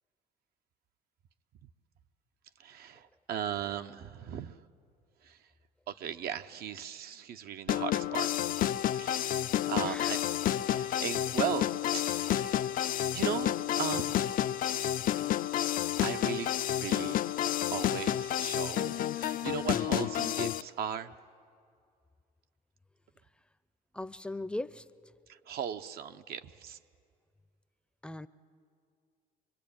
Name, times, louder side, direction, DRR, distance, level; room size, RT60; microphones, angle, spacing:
voice 1, 2.6-4.6 5.2-5.4 5.9-8.3 9.0-10.2 10.7-11.7 11.9-12.6 13.1-14.6 16.0-17.2 17.7-21.1 25.3-26.8, right 9 dB, 65° right, 9 dB, 0.8 m, -37 dB
sound 1, 7.7-20.6, left 12 dB, 55° left, 0.5 m, -30 dB
voice 2, 9.5-10.2 23.9-24.8 28.0-28.3, left 1 dB, 5° left, 14 dB, 0.6 m, -39 dB
24.5 x 21.5 x 8.7 m, 2.3 s
cardioid pair, 110°, 17 cm